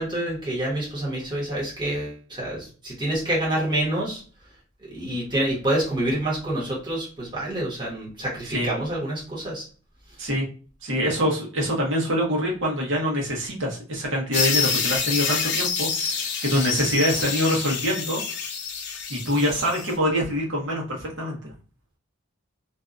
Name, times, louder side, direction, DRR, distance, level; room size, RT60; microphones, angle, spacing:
voice 1, 0.0-4.2 4.9-9.6, right 1 dB, 20° right, -5 dB, 1.1 m, -27 dB
voice 2, 10.8-18.2 19.1-21.5, equal, 65° right, -2 dB, 1.0 m, -25 dB
sound 1, 14.3-19.9, left 6 dB, 55° left, 0.5 m, -27 dB
2.6 x 2.3 x 2.4 m, 0.38 s
head